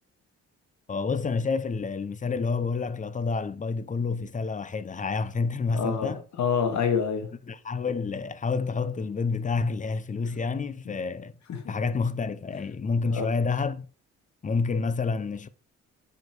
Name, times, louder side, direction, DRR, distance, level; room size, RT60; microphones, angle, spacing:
voice 1, 0.9-6.2 7.5-11.3 11.7-13.9 14.4-15.5, left 4 dB, 25° left, 0.7 m, -28 dB
voice 2, 5.7-7.3 10.9-11.0 11.5-11.7 13.1-13.3, left 6 dB, 65° left, 2.3 m, -27 dB
9.4 x 5.1 x 4.7 m
cardioid pair, 90°, 30 cm